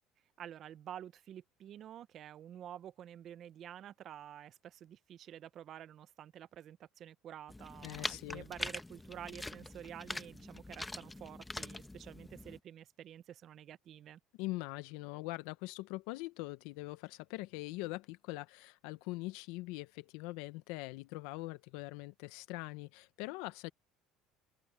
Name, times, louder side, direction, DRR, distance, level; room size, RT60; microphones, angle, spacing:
voice 1, 0.4-14.2, right 10 dB, 45° right, 0.6 m, -50 dB
sound 1, 7.5-12.6, left 2 dB, 10° left, 0.9 m, -44 dB
voice 2, 7.8-8.5 14.4-23.7, left 21 dB, 85° left, 0.7 m, -42 dB
open air
cardioid pair, 140°, 0 cm